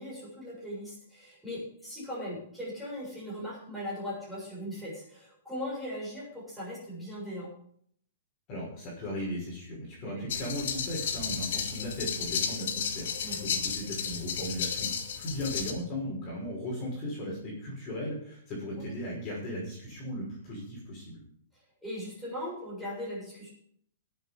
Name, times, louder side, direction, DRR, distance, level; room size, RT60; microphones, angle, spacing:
voice 1, 0.0-7.5 10.1-10.3 13.2-13.4 18.8-18.9 21.8-23.5, equal, ahead, -7 dB, 7.1 m, -39 dB
voice 2, 8.5-13.1 13.4-14.9 15.2-21.2, left 1 dB, 25° left, -4 dB, 5.8 m, -37 dB
sound 1, 10.3-15.7, left 7 dB, 65° left, 2.4 m, -33 dB
17.5 x 8.3 x 5.2 m, 0.64 s
hypercardioid pair, 160°, 0 cm